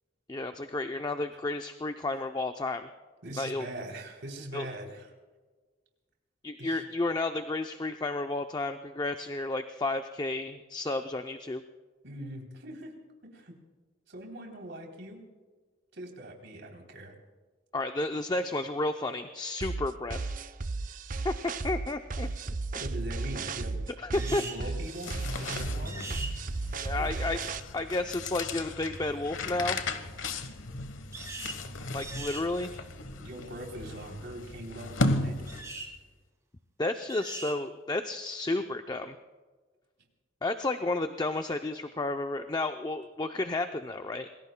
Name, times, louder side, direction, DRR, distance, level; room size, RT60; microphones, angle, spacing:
voice 1, 0.3-2.9 3.4-3.7 4.5-4.7 6.4-11.6 17.7-20.3 21.2-22.3 24.0-24.7 26.8-27.4 27.7-29.8 31.9-32.7 36.8-39.2 40.4-44.3, left 2 dB, 20° left, 7 dB, 0.5 m, -32 dB
voice 2, 3.2-5.1 6.6-6.8 12.0-13.0 13.3-13.5 14.1-15.3 15.9-17.1 22.2-22.3 22.8-23.8 24.1-25.1 25.4-26.1 26.9-27.3 33.2-35.5, right 1 dB, 65° right, 1 dB, 3.3 m, -41 dB
sound 1, 19.6-27.6, right 3 dB, 45° right, 0.5 m, -34 dB
sound 2, 24.1-24.6 25.9-26.3 31.1-31.6 32.0-32.5 35.5-35.9 37.1-37.6, right 3 dB, 15° right, 2.3 m, -40 dB
sound 3, 24.7-35.9, left 2 dB, 90° left, 1.1 m, -36 dB
27.0 x 20.5 x 2.2 m, 1.4 s
head